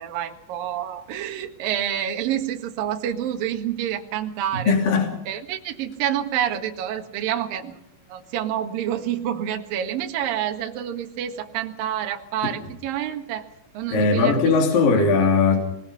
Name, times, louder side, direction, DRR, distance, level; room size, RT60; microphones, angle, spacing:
voice 1, 0.0-4.7 5.3-7.8 8.1-13.5 13.7-14.5, right 10 dB, 60° right, 4 dB, 2.9 m, -28 dB
voice 2, 4.6-5.1 13.9-15.6, left 4 dB, 50° left, 1 dB, 4.3 m, -19 dB
25.5 x 20.5 x 5.7 m, 0.77 s
omnidirectional pair, 5.6 m